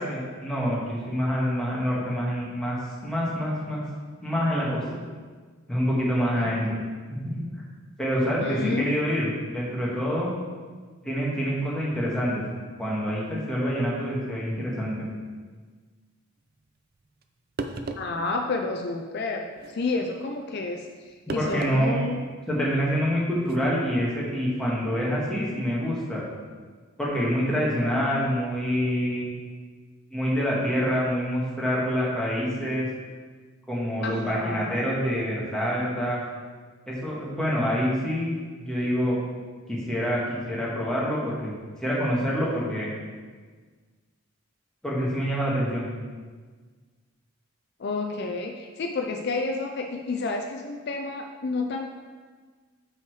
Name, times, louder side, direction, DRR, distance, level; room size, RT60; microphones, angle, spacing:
voice 1, 0.0-3.8 4.2-5.0 5.7-6.8 7.4-7.5 8.0-10.3 11.0-12.4 12.8-15.1 21.3-22.0 22.5-26.2 27.0-29.3 30.1-32.9 33.7-36.2 36.9-38.3 38.6-39.2 39.7-41.5 41.8-42.9 44.8-45.9, equal, 5° left, -6 dB, 1.6 m, -26 dB
voice 2, 8.4-8.9 18.0-22.2 34.0-34.8 47.8-51.9, left 3 dB, 50° left, 3 dB, 0.4 m, -30 dB
sound 1, 17.2-17.3 17.6-18.2 19.5-19.8 21.3-21.8 22.2-22.3 23.4-23.6, right 3 dB, 45° right, 0.4 m, -34 dB
6.4 x 5.6 x 4.7 m, 1.5 s
head